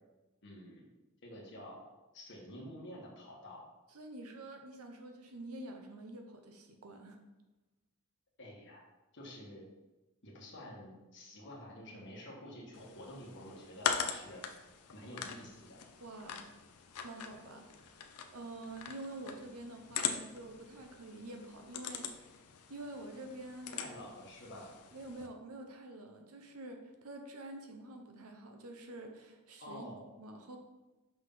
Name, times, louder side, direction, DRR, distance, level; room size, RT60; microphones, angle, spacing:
voice 1, 0.4-0.9 1.2-1.8 2.1-3.7 8.4-8.8 9.1-9.7 10.2-14.4 14.9-15.8 23.8-24.9 29.6-30.1, left 1 dB, 55° left, -2 dB, 1.8 m, -49 dB
voice 2, 3.9-7.2 16.0-16.5 17.0-18.0 18.3-22.3 22.7-23.8 24.9-29.9 30.2-30.6, right 2 dB, 75° right, 4 dB, 0.9 m, -47 dB
sound 1, 12.7-25.3, left 7 dB, 90° left, 0.6 m, -42 dB
5.9 x 5.6 x 3.9 m, 1.1 s
head